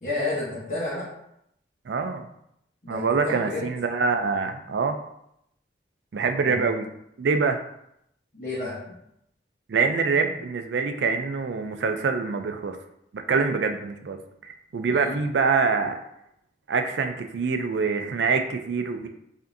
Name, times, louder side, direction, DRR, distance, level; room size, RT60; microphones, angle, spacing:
voice 1, 0.0-1.1 2.8-3.7 6.4-6.6 8.3-9.0 14.9-15.1, left 2 dB, 45° left, -9 dB, 0.9 m, -31 dB
voice 2, 1.9-2.3 2.9-5.0 6.1-6.9 7.2-7.6 9.7-12.8 13.1-16.0 16.7-19.1, right 4 dB, 75° right, 7 dB, 0.4 m, -25 dB
4.9 x 2.6 x 2.6 m, 0.76 s
head